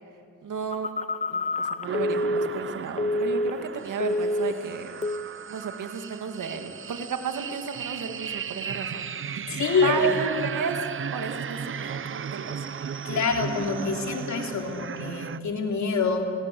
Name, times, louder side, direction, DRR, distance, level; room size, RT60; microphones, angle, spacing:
voice 1, 0.4-0.9 1.3-4.9 5.5-9.1 9.4-9.5 9.8-10.8 11.1-12.6, right 6 dB, 75° right, 5 dB, 2.3 m, -33 dB
Telephone, 0.7-3.7 4.0-4.7 5.0-5.3, left 1 dB, 25° left, 0.6 m, -28 dB
sound 1, 1.8-15.4, right 7 dB, 40° right, 0.7 m, -35 dB
voice 2, 9.5-10.1 13.0-16.3, left 5 dB, 65° left, 2 dB, 3.3 m, -26 dB
28.5 x 19.0 x 7.8 m, 2.6 s
cardioid pair, 90°, 31 cm